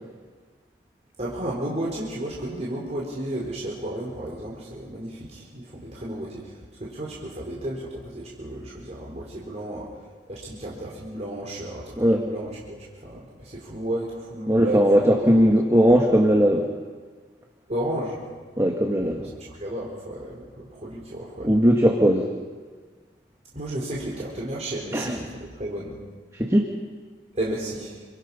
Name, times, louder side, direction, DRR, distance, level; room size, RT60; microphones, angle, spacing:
voice 1, 1.2-9.9 10.3-15.3 17.7-18.2 19.0-19.1 19.5-21.6 23.5-26.0 27.3-28.1, right 1 dB, 40° right, -5 dB, 4.3 m, -33 dB
voice 2, 14.5-16.7 18.6-19.3 21.4-22.3 24.9-25.1 26.3-26.7, equal, 15° right, 1 dB, 1.9 m, -19 dB
29.0 x 25.5 x 5.7 m, 1.5 s
head